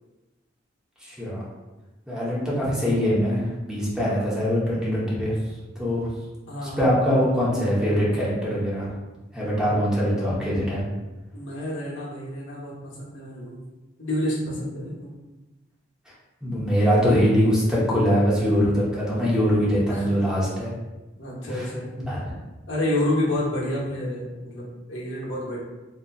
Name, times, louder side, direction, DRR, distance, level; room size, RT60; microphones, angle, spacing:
voice 1, 1.0-1.4 2.1-5.3 5.7-6.0 6.6-8.9 9.3-10.9 16.4-20.7 21.4-21.7 22.1-22.2, equal, 5° right, -7 dB, 0.9 m, -23 dB
voice 2, 2.1-2.4 4.0-4.4 6.5-6.9 11.3-13.6 14.0-15.1 19.9-20.2 21.2-21.9 22.7-25.6, left 1 dB, 85° left, -5 dB, 1.0 m, -29 dB
3.9 x 2.7 x 2.3 m, 1.1 s
head